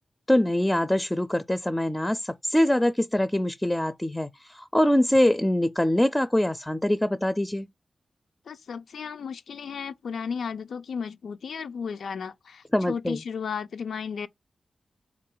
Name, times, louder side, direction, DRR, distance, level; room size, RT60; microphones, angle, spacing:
voice 1, 0.3-7.7 12.7-13.2, left 1 dB, 15° left, 0.4 m, -24 dB
voice 2, 8.5-14.3, left 6 dB, 85° left, 0.3 m, -34 dB
3.6 x 2.3 x 3.7 m
cardioid pair, 45°, 0 cm